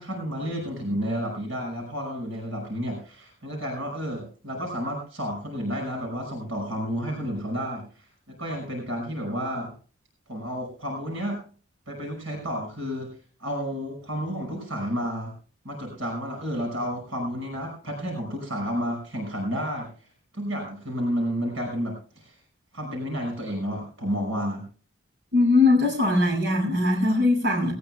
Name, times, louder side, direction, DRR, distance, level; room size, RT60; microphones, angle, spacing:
voice 1, 0.0-9.7 10.3-11.4 11.9-13.1 13.4-15.3 15.6-20.1 20.3-22.4 22.7-24.7, equal, 70° right, 1 dB, 5.6 m, -31 dB
voice 2, 25.3-27.7, left 2 dB, 55° right, 0 dB, 6.5 m, -20 dB
20.0 x 18.5 x 2.2 m, 0.39 s
head